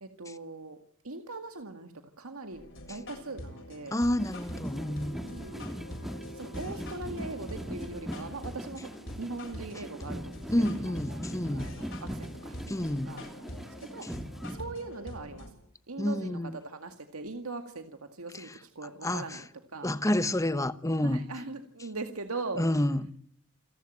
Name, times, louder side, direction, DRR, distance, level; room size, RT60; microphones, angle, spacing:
voice 1, 0.0-0.8 1.0-4.0 5.2-5.7 6.3-11.2 11.5-13.3 13.6-14.1 14.5-15.5 15.9-19.5 19.7-19.9 21.0-22.6, right 3 dB, 90° right, 2.0 m, -41 dB
sound 1, 2.5-15.5, equal, 60° left, 7.4 m, -44 dB
voice 2, 3.9-5.2 10.5-11.7 12.7-13.2 14.0-14.1 16.0-16.6 18.3-18.6 19.0-19.4 19.8-21.2 22.6-23.1, left 1 dB, 15° left, 1.0 m, -29 dB
sound 2, 4.2-14.6, equal, ahead, 1.6 m, -40 dB
29.0 x 11.5 x 9.1 m
head